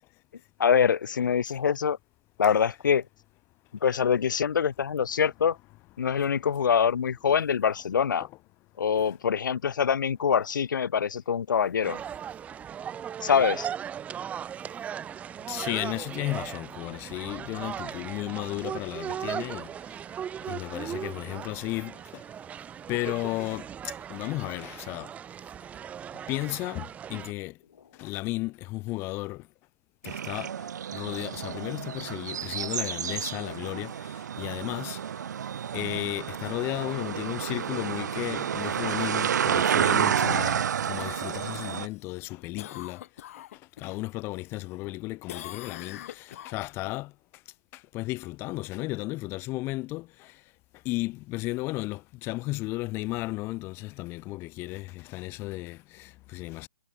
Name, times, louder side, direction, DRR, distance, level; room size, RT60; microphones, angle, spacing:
voice 1, 0.6-2.0 2.4-3.0 3.8-5.6 6.0-8.3 8.8-12.0 13.2-13.7, left 7 dB, 75° left, 0.4 m, -24 dB
sound 1, 11.8-27.3, right 8 dB, 15° right, 1.6 m, -38 dB
voice 2, 15.5-19.7 20.5-22.2 22.9-25.1 26.3-27.6 28.0-29.5 30.0-35.0 35.7-43.0 43.8-47.1 47.7-50.4 50.8-56.7, left 20 dB, 20° left, 0.9 m, -34 dB
sound 2, 30.1-41.9, right 8 dB, 60° right, 1.0 m, -30 dB
Cough, 41.0-44.0 44.4-45.0 45.3-47.0 51.4-51.5, left 12 dB, 45° left, 2.0 m, -44 dB
hypercardioid pair, 140°, 11 cm